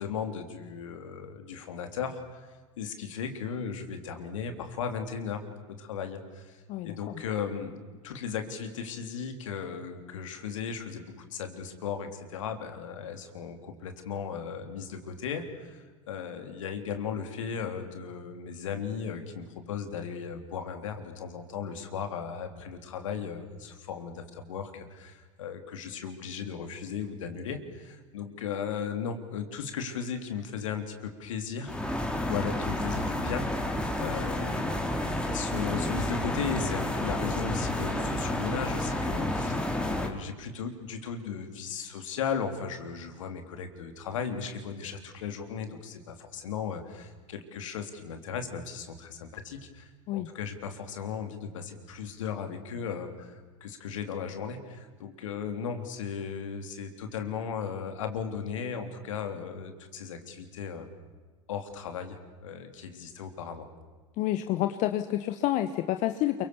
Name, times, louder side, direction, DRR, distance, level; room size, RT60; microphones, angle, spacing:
voice 1, 0.0-2.5 2.8-7.8 8.0-33.5 34.0-34.8 35.3-60.9 61.5-63.7, left 6 dB, 75° left, 7 dB, 3.5 m, -36 dB
sound 1, 31.7-40.1, left 1 dB, 5° left, 3.3 m, -30 dB
voice 2, 64.2-66.5, left 14 dB, 50° left, 8 dB, 1.3 m, -28 dB
29.0 x 24.0 x 7.1 m, 1.4 s
hypercardioid pair, 90°, 17 cm